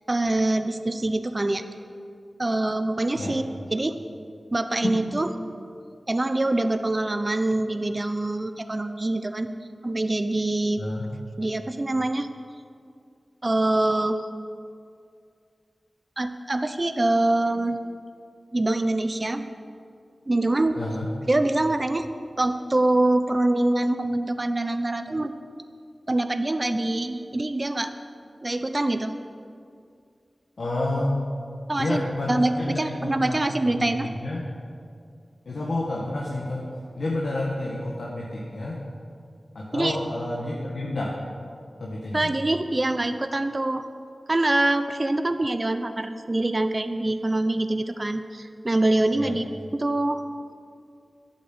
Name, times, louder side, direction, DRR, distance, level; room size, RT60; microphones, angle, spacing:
voice 1, 0.1-1.6 2.4-3.4 3.7-4.0 4.5-5.3 6.1-9.5 9.8-10.8 11.4-12.3 13.4-14.2 16.2-17.8 18.5-19.5 20.3-20.8 21.3-22.1 22.4-25.4 26.1-27.9 28.4-29.1 31.7-32.0 32.3-34.1 39.7-40.0 42.1-43.9 44.3-49.4 49.7-50.2, right 2 dB, 35° right, 9 dB, 0.7 m, -24 dB
voice 2, 20.7-21.1 30.6-31.2 31.8-34.4 35.4-36.7 37.0-38.8 39.5-41.1 41.8-42.3 49.1-49.4, left 1 dB, 75° left, -4 dB, 1.8 m, -29 dB
11.5 x 8.9 x 7.9 m, 2.3 s
wide cardioid pair, 65°, 0 cm